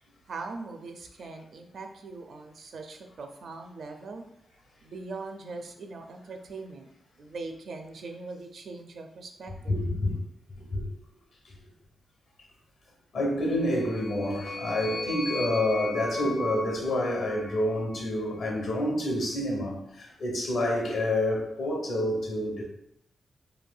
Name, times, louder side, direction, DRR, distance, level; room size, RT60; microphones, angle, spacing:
voice 1, 0.3-4.2 4.8-6.9 7.2-9.8, right 3 dB, 65° right, 5 dB, 0.4 m, -41 dB
voice 2, 9.7-10.2 10.6-10.9 13.1-22.6, left 1 dB, 70° left, 0 dB, 0.9 m, -28 dB
sound 1, 13.6-18.0, left 2 dB, 50° left, 0.6 m, -37 dB
3.1 x 2.6 x 2.2 m, 0.75 s
cardioid pair, 105°, 0 cm